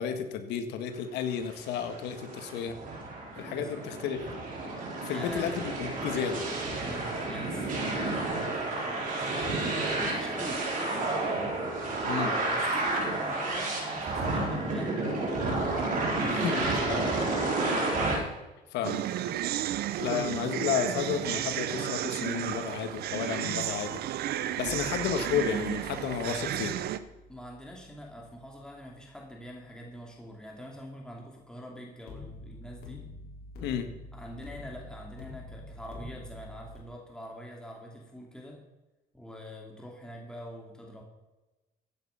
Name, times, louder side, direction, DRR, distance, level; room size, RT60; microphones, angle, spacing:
voice 1, 0.0-2.8 3.4-4.2 5.0-6.4 12.0-12.4 16.4-17.0 18.7-19.0 20.0-24.0 24.6-26.8 33.6-33.9, left 8 dB, 85° left, 7 dB, 1.8 m, -32 dB
sound 1, 1.3-18.2, right 2 dB, 55° right, 4.5 m, -31 dB
voice 2, 3.2-3.8 5.1-5.5 6.8-9.7 10.0-11.3 12.5-15.6 16.2-17.3 27.3-33.1 34.1-38.6 39.1-41.0, equal, 5° left, -1 dB, 2.7 m, -44 dB
sound 2, 18.8-27.0, right 12 dB, 70° right, 0.8 m, -33 dB
sound 3, 24.6-29.7 32.1-36.8, left 1 dB, 65° left, 4.3 m, -47 dB
15.0 x 9.1 x 5.8 m, 1.1 s
cardioid pair, 110°, 17 cm